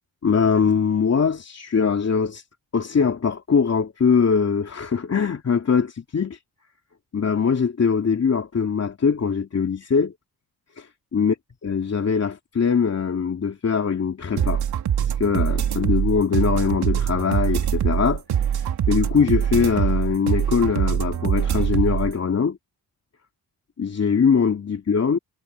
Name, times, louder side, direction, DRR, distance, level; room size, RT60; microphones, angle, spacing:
voice 1, 0.2-2.4 2.7-6.4 7.1-10.1 10.8-11.3 11.6-14.6 15.0-18.2 18.5-22.6 23.8-25.2, left 6 dB, 40° left, 3.0 m, -22 dB
sound 1, 14.4-22.1, right 9 dB, 85° right, 3.8 m, -23 dB
wide cardioid pair, 125°, 38 cm